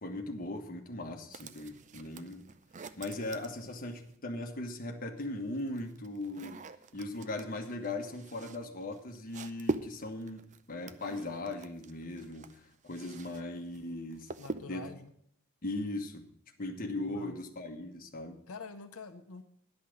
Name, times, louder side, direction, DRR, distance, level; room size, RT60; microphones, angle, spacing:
voice 1, 0.0-2.5 3.0-6.6 6.9-10.4 10.7-14.3 14.7-14.8 15.6-16.3 16.6-18.4, left 2 dB, 40° left, 3 dB, 1.3 m, -39 dB
sound 1, 1.3-4.2 5.2-13.4 13.7-15.0, right 3 dB, 35° right, 0.5 m, -43 dB
voice 2, 14.4-15.1 17.1-17.4 18.5-19.4, left 4 dB, 80° left, 6 dB, 0.8 m, -46 dB
10.5 x 5.8 x 8.4 m, 0.66 s
head